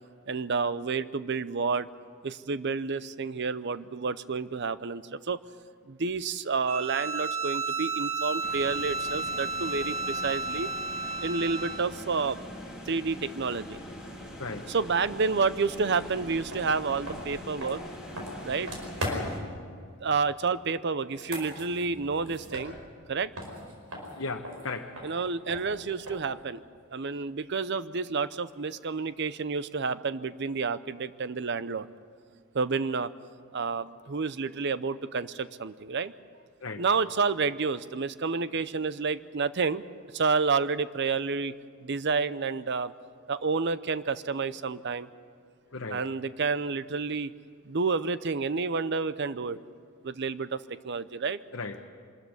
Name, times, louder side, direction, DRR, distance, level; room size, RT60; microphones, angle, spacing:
voice 1, 0.3-1.9 2.2-5.4 5.9-10.7 11.2-12.5 12.9-13.8 14.7-17.8 18.4-18.7 20.0-22.8 23.1-23.3 25.0-26.6 26.9-31.9 32.5-33.1 33.5-36.1 36.8-39.8 40.1-41.5 41.8-42.9 43.3-45.1 45.9-47.3 47.7-49.6 50.0-50.6 50.8-51.4, right 4 dB, 55° right, 15 dB, 0.7 m, -29 dB
Bowed string instrument, 6.7-11.9, right 4 dB, 35° right, 1.1 m, -32 dB
sound 1, 8.4-19.4, equal, 5° right, 3.7 m, -43 dB
sound 2, 15.9-16.1 16.5-19.5 21.0-23.1 23.3-26.4, equal, 75° right, 5.0 m, -39 dB
voice 2, 19.0-19.4 24.1-25.0 36.6-36.8 45.7-46.0 51.5-51.9, left 3 dB, 65° left, 2 dB, 1.1 m, -36 dB
25.5 x 13.5 x 9.5 m, 2.2 s
head